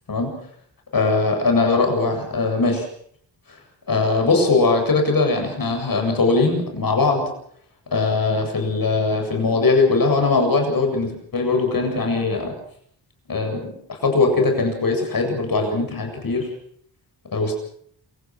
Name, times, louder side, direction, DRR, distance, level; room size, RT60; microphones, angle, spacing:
voice 1, 0.9-2.9 3.9-7.3 7.9-12.5 13.3-16.5 17.3-17.5, left 3 dB, 55° left, 3 dB, 7.9 m, -20 dB
28.0 x 17.0 x 6.4 m, 0.63 s
cardioid pair, 75°, 42 cm